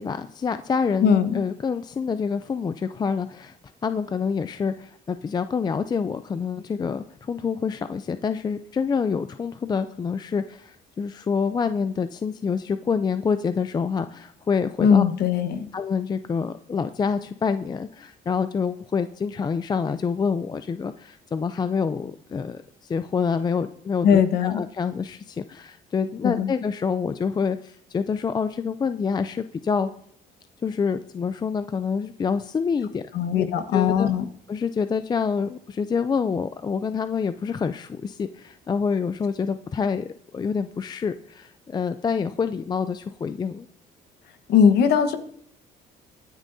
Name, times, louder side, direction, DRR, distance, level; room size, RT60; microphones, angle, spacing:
voice 1, 0.0-3.6 3.8-15.0 15.7-29.9 30.6-33.0 33.4-33.5 33.7-34.1 34.5-43.7, left 5 dB, 25° left, 11 dB, 0.4 m, -27 dB
voice 2, 1.0-1.4 14.8-15.6 24.0-24.6 26.2-26.5 33.1-34.2 44.5-45.2, left 7 dB, 70° left, 9 dB, 1.2 m, -19 dB
23.0 x 9.9 x 2.7 m, 0.66 s
cardioid pair, 110°, 17 cm